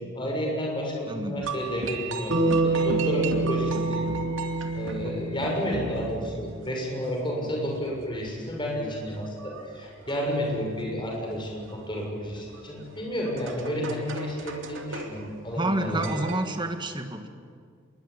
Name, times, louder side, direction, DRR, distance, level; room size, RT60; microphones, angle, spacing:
voice 1, 0.0-4.1 4.7-16.2, equal, 25° left, -1 dB, 6.9 m, -31 dB
voice 2, 1.1-1.5 5.0-5.2 15.6-17.3, right 1 dB, 25° right, 6 dB, 1.9 m, -29 dB
sound 1, 1.4-16.5, right 4 dB, 90° right, 2.6 m, -38 dB
Bass guitar, 2.3-6.7, right 2 dB, 55° right, 5.6 m, -27 dB
26.5 x 22.0 x 10.0 m, 2.1 s
head